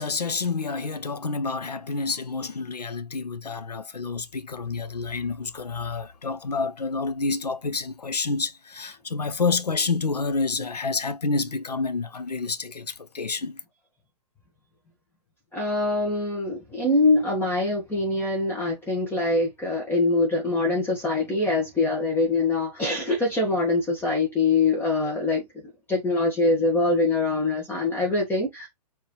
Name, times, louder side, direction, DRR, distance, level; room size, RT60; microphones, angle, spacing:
voice 1, 0.0-13.6, left 4 dB, 90° left, 0.6 m, -28 dB
voice 2, 15.5-25.4 25.9-28.7, left 2 dB, 10° left, 1.4 m, -24 dB
4.7 x 2.9 x 3.0 m
figure-of-eight pair, 120°, 20 cm